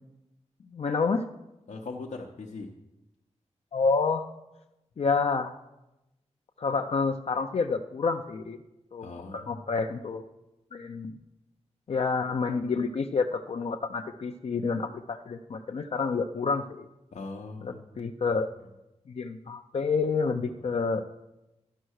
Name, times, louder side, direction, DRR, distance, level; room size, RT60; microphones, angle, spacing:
voice 1, 0.7-1.3 3.7-4.3 5.0-5.5 6.6-8.6 8.9-9.1 9.3-10.2 10.7-11.1 11.9-16.9 17.6-18.5 19.1-21.0, left 4 dB, 60° left, 5 dB, 0.5 m, -28 dB
voice 2, 1.7-2.7 9.0-9.6 17.1-18.0, left 3 dB, 85° left, -1 dB, 0.8 m, -40 dB
11.5 x 5.5 x 6.3 m, 0.96 s
wide cardioid pair, 105°, 12 cm